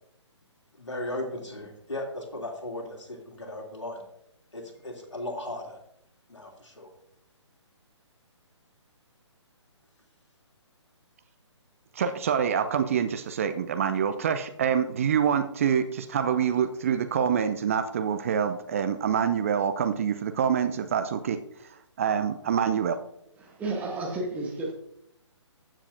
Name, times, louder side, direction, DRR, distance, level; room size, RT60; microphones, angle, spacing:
voice 1, 0.7-4.0 4.5-5.8 6.3-6.9, left 1 dB, 70° left, 2.9 m, -36 dB
voice 2, 11.9-23.0, right 8 dB, 30° right, 0.5 m, -26 dB
voice 3, 23.4-24.7, right 2 dB, 10° right, 1.3 m, -32 dB
14.5 x 7.3 x 2.6 m
figure-of-eight pair, 135°, 16 cm